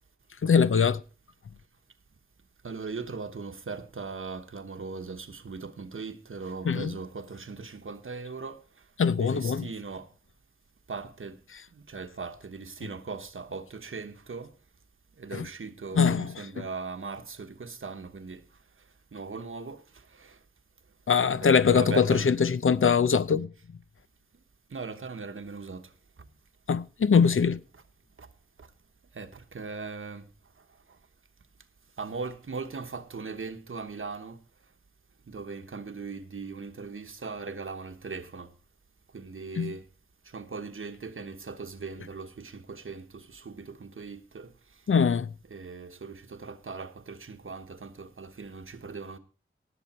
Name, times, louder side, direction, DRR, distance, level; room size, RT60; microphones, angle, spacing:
voice 1, 0.4-1.0 6.6-6.9 9.0-9.7 16.0-16.3 21.1-23.5 26.7-27.6 39.6-39.7 44.9-45.3, left 6 dB, 80° left, 0.6 m, -22 dB
voice 2, 2.6-8.6 9.1-10.1 10.9-11.3 11.9-14.5 15.2-18.4 19.1-19.8 21.4-22.3 24.7-25.9 29.2-30.2 32.0-34.4 35.3-38.5 39.1-39.8 40.3-43.0 43.3-44.5 45.5-49.2, right 4 dB, 85° right, 1.2 m, -39 dB
18.5 x 7.0 x 4.3 m
wide cardioid pair, 65°, 21 cm